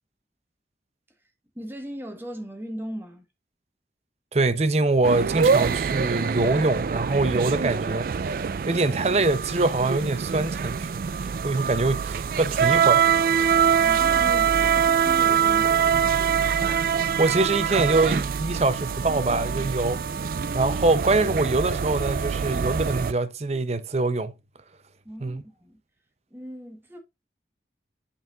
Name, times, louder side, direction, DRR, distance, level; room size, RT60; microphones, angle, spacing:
voice 1, 1.5-3.3 13.8-15.8 25.0-25.8 26.3-27.0, equal, 10° right, 1.5 m, -38 dB
voice 2, 4.3-10.9 11.4-13.2 17.2-20.0 20.5-24.3 25.2-25.4, right 2 dB, 35° right, 0.7 m, -24 dB
sound 1, 5.0-23.1, right 7 dB, 55° right, 0.3 m, -24 dB
8.5 x 5.5 x 2.5 m
head